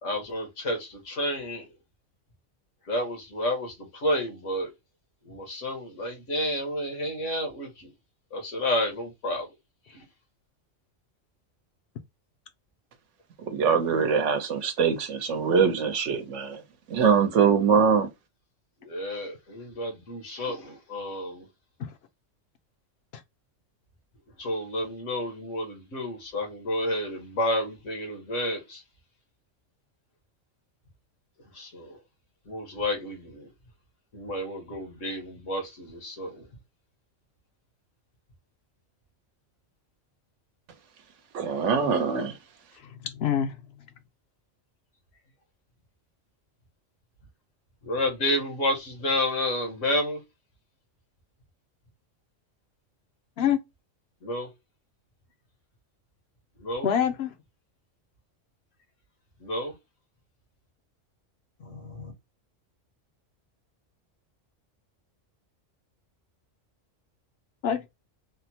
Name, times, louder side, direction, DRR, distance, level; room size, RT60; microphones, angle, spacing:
voice 1, 0.0-1.7 2.9-4.7 5.2-7.9 8.3-9.5 9.9-10.1 18.8-21.5 24.4-28.8 31.5-32.0 32.5-33.5 34.1-36.5 47.8-50.2 54.2-54.5 56.6-56.9 59.4-59.7 61.6-62.1, left 1 dB, 85° left, 1.5 m, -30 dB
voice 2, 13.5-16.6 16.9-18.1 41.3-42.4, right 6 dB, 75° right, 1.0 m, -23 dB
voice 3, 42.8-43.6 53.4-53.6 56.8-57.3 67.6-67.9, left 9 dB, 65° left, 0.7 m, -26 dB
3.5 x 2.1 x 2.7 m
omnidirectional pair, 1.3 m